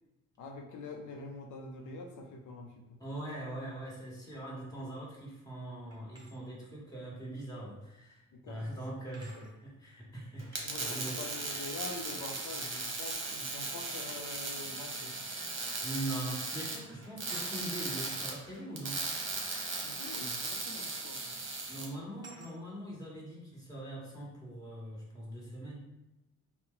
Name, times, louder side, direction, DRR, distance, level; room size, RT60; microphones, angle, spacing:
voice 1, 0.4-2.8 8.3-8.6 9.3-9.5 10.6-15.1 19.8-21.3, left 3 dB, 80° left, 2 dB, 0.6 m, -45 dB
voice 2, 3.0-11.2 15.8-19.1 21.7-25.9, right 1 dB, 10° left, -6 dB, 1.3 m, -42 dB
sound 1, 5.9-6.4 7.9-8.0 9.1-9.6 11.8-12.1 13.0-13.3 14.5-14.6 15.9-16.1 16.4-16.6 17.3-17.6 20.0-20.3 21.1-21.3 22.2-22.6, right 3 dB, 15° right, 0.9 m, -53 dB
sound 2, 10.4-21.9, right 3 dB, 40° right, 0.9 m, -37 dB
4.3 x 2.1 x 3.8 m, 0.95 s
cardioid pair, 130°, 31 cm